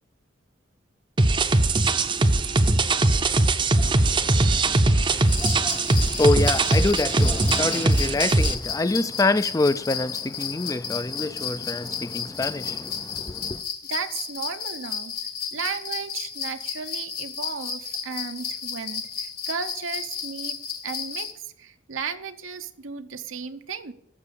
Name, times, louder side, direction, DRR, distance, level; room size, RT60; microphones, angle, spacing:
sound 1, 1.2-8.5, right 2 dB, 25° right, 0.6 m, -20 dB
voice 1, 3.8-13.6, left 2 dB, 15° left, 0.4 m, -27 dB
sound 2, 5.3-21.3, left 7 dB, 50° left, 1.3 m, -33 dB
voice 2, 13.9-15.1 15.5-23.9, right 5 dB, 80° right, 0.8 m, -34 dB
12.5 x 7.4 x 6.9 m
head